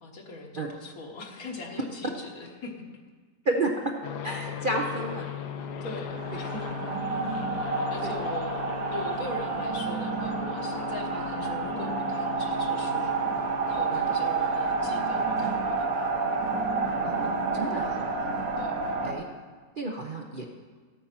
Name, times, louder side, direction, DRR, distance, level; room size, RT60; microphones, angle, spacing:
voice 1, 0.0-2.8 3.5-3.6 4.7-5.1 5.8-6.8 7.9-13.2 13.7-16.2 18.0-18.1 18.6-18.9, left 3 dB, 60° left, 2 dB, 1.7 m, -41 dB
voice 2, 3.4-3.9 4.2-5.2 7.6-8.1 13.9-14.1 17.0-18.0 19.0-19.2 19.8-20.5, right 2 dB, 40° right, 0 dB, 0.7 m, -31 dB
sound 1, 4.0-18.1, left 7 dB, 80° left, 1.3 m, -38 dB
sound 2, 6.1-19.1, right 4 dB, 60° right, 1.5 m, -29 dB
12.5 x 8.6 x 5.9 m, 1.5 s
omnidirectional pair, 1.8 m